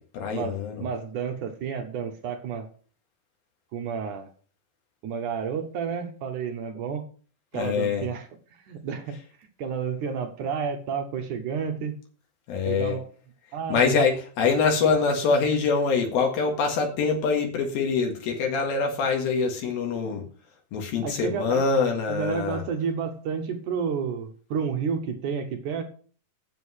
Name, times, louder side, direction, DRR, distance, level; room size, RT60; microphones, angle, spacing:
voice 1, 0.0-0.8 7.5-8.1 12.5-13.0 13.7-20.2 20.7-22.6, left 5 dB, 85° left, 2 dB, 3.6 m, -24 dB
voice 2, 0.8-2.7 3.7-4.3 5.0-7.0 7.5-8.3 8.7-9.2 9.6-12.0 12.7-13.0 13.5-14.0 14.8-14.9 21.0-21.6 22.1-25.8, right 6 dB, 65° right, 6 dB, 2.5 m, -30 dB
8.7 x 7.9 x 6.3 m, 0.40 s
omnidirectional pair, 4.2 m